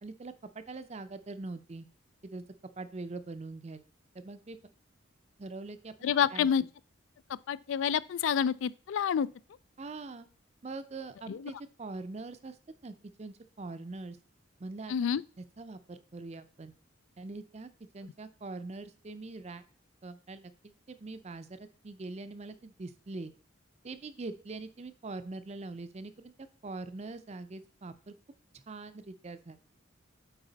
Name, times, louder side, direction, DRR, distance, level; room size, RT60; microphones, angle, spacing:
voice 1, 0.0-1.9 2.2-2.4 2.8-3.8 4.1-4.6 5.4-6.5 9.8-10.3 10.6-12.6 12.8-14.2 14.6-14.9 15.6-16.7 17.2-19.6 20.0-23.3 23.8-26.3 26.6-28.1 28.7-29.6, right 3 dB, 35° right, 0.5 m, -43 dB
voice 2, 6.0-6.6 7.5-9.3 11.3-11.5 14.9-15.2, left 8 dB, 75° left, 0.3 m, -28 dB
8.9 x 4.2 x 4.0 m
head